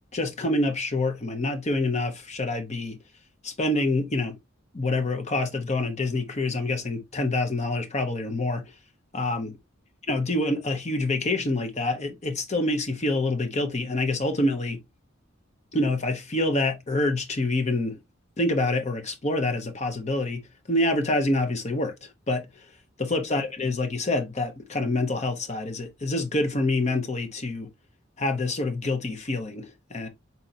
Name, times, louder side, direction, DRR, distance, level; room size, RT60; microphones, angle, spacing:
voice 1, 0.1-3.0 3.4-4.3 4.7-8.6 9.1-9.6 10.1-14.8 15.7-18.0 18.4-20.4 20.7-21.9 22.3-22.4 23.0-27.7 28.2-30.1, left 2 dB, 35° left, 0.9 m, -26 dB
4.1 x 3.6 x 2.7 m
head